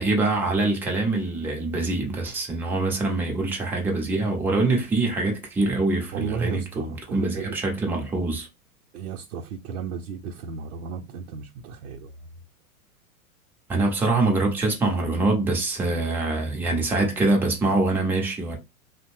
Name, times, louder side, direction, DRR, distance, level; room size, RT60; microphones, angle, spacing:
voice 1, 0.0-8.5 13.7-18.6, right 2 dB, 5° right, 0.4 m, -24 dB
voice 2, 6.1-7.5 8.9-12.1 16.7-16.8, right 6 dB, 65° right, 0.6 m, -34 dB
2.7 x 2.0 x 3.0 m
hypercardioid pair, 110°, 44 cm